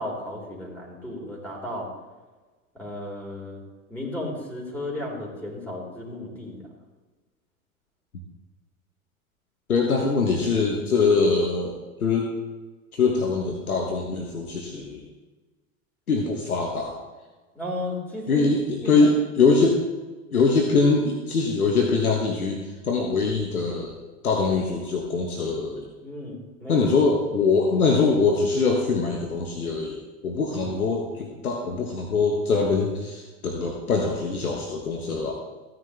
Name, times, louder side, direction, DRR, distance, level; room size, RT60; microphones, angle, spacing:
voice 1, 0.0-1.9 2.7-3.6 3.9-6.7 17.5-18.5 18.8-19.1 26.0-26.8 27.3-27.5 30.5-30.8, left 1 dB, 5° left, -3 dB, 3.9 m, -34 dB
voice 2, 9.7-12.3 12.9-15.1 16.1-17.0 18.3-19.8 20.3-24.0 24.2-25.9 26.7-35.3, left 4 dB, 90° left, 1 dB, 1.4 m, -23 dB
15.0 x 9.8 x 3.4 m, 1.3 s
hypercardioid pair, 95°, 42 cm